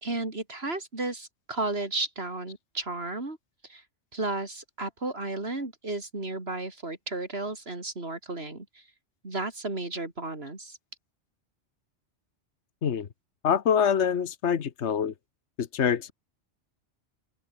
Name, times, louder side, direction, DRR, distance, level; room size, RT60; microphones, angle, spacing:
voice 1, 0.0-3.4 3.7-3.8 4.1-8.8 9.2-10.8, right 2 dB, 60° right, 4.1 m, -33 dB
voice 2, 13.4-15.1 15.6-16.1, left 7 dB, 75° left, 1.4 m, -25 dB
open air
omnidirectional pair, 1.2 m